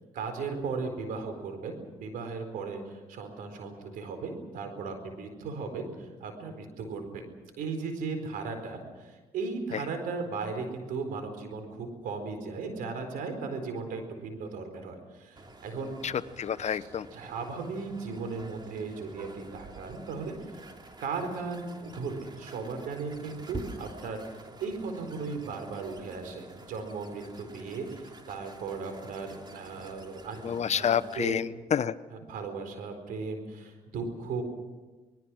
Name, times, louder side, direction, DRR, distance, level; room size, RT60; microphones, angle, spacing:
voice 1, 0.1-7.2 7.6-15.9 16.6-16.8 17.1-20.6 21.0-24.2 24.6-30.9 31.1-31.3 32.1-34.4, right 4 dB, 85° right, 7 dB, 4.4 m, -36 dB
sound 1, 15.4-31.3, right 3 dB, 30° right, 3.0 m, -48 dB
voice 2, 16.0-17.1 30.4-32.0, left 8 dB, 55° left, 16 dB, 0.9 m, -29 dB
27.0 x 20.0 x 6.3 m, 1.3 s
supercardioid pair, 65°, 14 cm